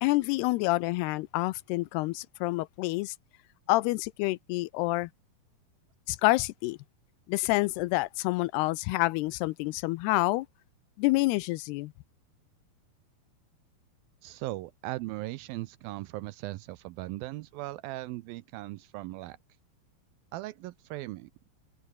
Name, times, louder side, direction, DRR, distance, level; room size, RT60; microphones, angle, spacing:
voice 1, 0.0-3.2 3.7-5.1 6.1-6.8 7.3-10.5 11.0-11.9, left 20 dB, 85° left, 2.7 m, -28 dB
voice 2, 14.2-19.4 20.3-21.5, right 18 dB, 80° right, 2.3 m, -38 dB
open air
omnidirectional pair, 4.6 m